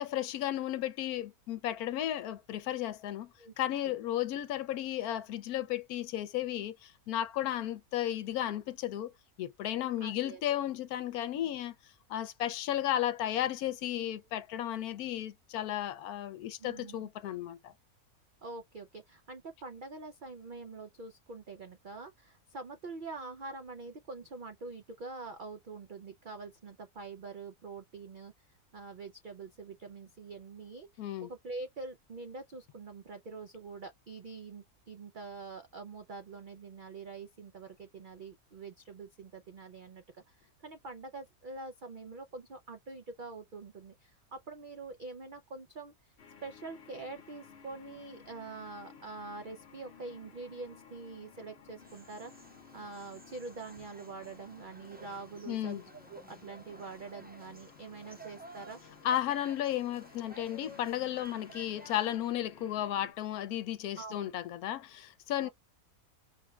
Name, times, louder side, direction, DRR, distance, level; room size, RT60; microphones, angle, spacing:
voice 1, 0.0-3.3 3.6-9.1 9.4-11.7 12.1-17.7 31.0-31.3 55.5-55.8 59.0-65.5, left 12 dB, 80° left, 1.1 m, -34 dB
voice 2, 10.0-10.4 16.6-17.1 18.4-28.3 28.7-46.1 46.4-52.3 52.7-55.8 56.1-58.8 64.0-64.2 65.4-65.5, right 3 dB, 75° right, 0.4 m, -45 dB
sound 1, 46.2-63.1, left 7 dB, 50° left, 1.0 m, -56 dB
sound 2, 51.8-62.2, right 1 dB, 10° right, 0.5 m, -54 dB
5.1 x 2.3 x 3.0 m
omnidirectional pair, 1.6 m